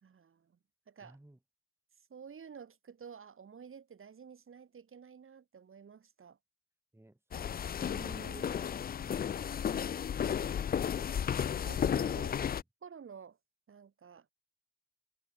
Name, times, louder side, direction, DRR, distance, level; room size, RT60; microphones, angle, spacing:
voice 1, 0.0-0.6 0.9-1.2 2.1-6.4 7.9-8.5 11.1-12.4 12.8-13.4 13.7-14.3, right 6 dB, 45° right, 4.1 m, -51 dB
voice 2, 1.0-1.4 6.9-7.7 8.3-10.0, right 1 dB, 10° right, 7.0 m, -58 dB
sound 1, 7.3-12.6, left 8 dB, 30° left, 0.4 m, -33 dB
cardioid pair, 90°, 30 cm